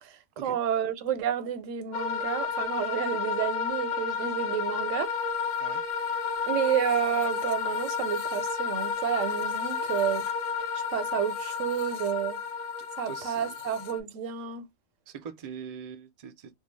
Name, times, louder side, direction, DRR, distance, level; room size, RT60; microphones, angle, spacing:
voice 1, 0.0-5.1 6.5-10.3 10.7-12.4 13.0-14.7, right 9 dB, 85° right, 0.9 m, -30 dB
sound 1, 1.9-14.0, left 6 dB, 80° left, 1.0 m, -31 dB
voice 2, 13.1-13.5 15.1-16.6, right 7 dB, 65° right, 0.3 m, -42 dB
2.6 x 2.2 x 3.1 m
omnidirectional pair, 1.3 m